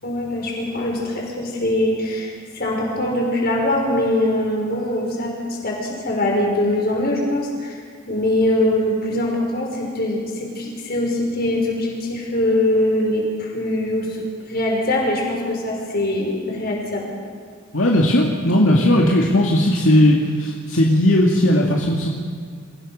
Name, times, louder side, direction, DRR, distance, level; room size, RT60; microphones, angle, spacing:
voice 1, 0.0-7.8 8.1-14.2 14.5-17.2, left 1 dB, 50° left, -1 dB, 5.9 m, -22 dB
voice 2, 17.7-22.1, left 1 dB, 70° left, -2 dB, 2.4 m, -17 dB
28.0 x 16.5 x 6.7 m, 2.2 s
head